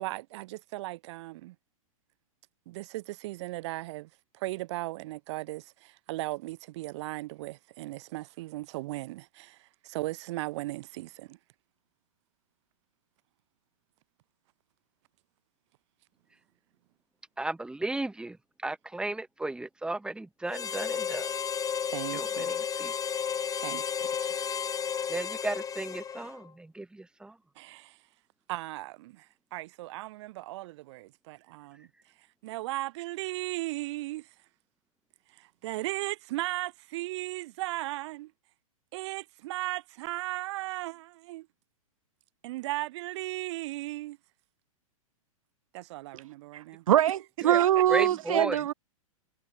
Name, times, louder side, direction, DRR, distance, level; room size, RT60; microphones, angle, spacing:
voice 1, 0.0-1.5 2.7-11.4 21.9-22.5 23.6-24.4 27.6-28.0 28.5-29.3 29.5-31.9 32.4-34.3 35.3-38.3 38.9-41.5 42.4-44.2 45.7-46.8 47.7-48.4, right 19 dB, 50° right, 3.3 m, -37 dB
voice 2, 17.4-18.4 18.6-21.3 22.1-22.9 25.1-27.4 47.4-47.6 47.9-48.6, right 2 dB, 5° right, 2.3 m, -34 dB
Harmonica, 20.5-26.5, left 7 dB, 20° left, 3.8 m, -33 dB
voice 3, 46.5-47.2 47.4-48.7, right 11 dB, 70° right, 0.5 m, -23 dB
hypercardioid pair, 110°, 18 cm